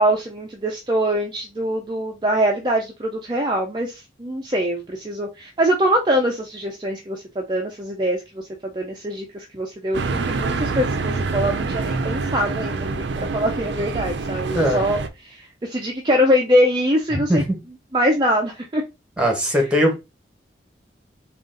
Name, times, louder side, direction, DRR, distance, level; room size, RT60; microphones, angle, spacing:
voice 1, 0.0-17.4 17.9-18.8 19.5-19.6, equal, 25° right, 0.5 m, -23 dB
sound 1, 9.9-15.1, right 3 dB, 75° right, 0.5 m, -26 dB
voice 2, 14.5-14.8 17.3-17.6 19.2-19.9, equal, 5° right, 1.1 m, -19 dB
3.8 x 2.4 x 3.7 m
head